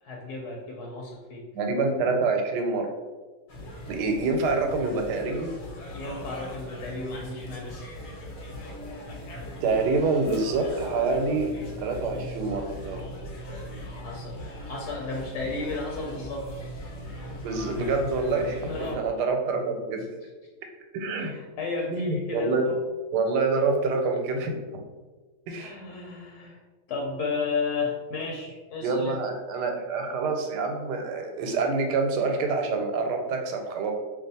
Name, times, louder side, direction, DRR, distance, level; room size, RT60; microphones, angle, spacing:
voice 1, 0.0-1.5 5.9-7.8 13.9-16.5 18.7-19.0 21.2-22.8 25.5-26.6 26.9-29.2, left 4 dB, 75° left, -2 dB, 1.1 m, -33 dB
voice 2, 1.5-2.9 3.9-5.5 9.6-13.0 17.4-20.1 20.9-21.3 21.9-22.7 23.1-24.5 25.5-25.8 28.8-33.9, right 3 dB, 85° right, 3 dB, 1.2 m, -26 dB
sound 1, 3.5-19.0, equal, 60° left, 0.8 m, -39 dB
2.6 x 2.4 x 4.0 m, 1.3 s
omnidirectional pair, 1.7 m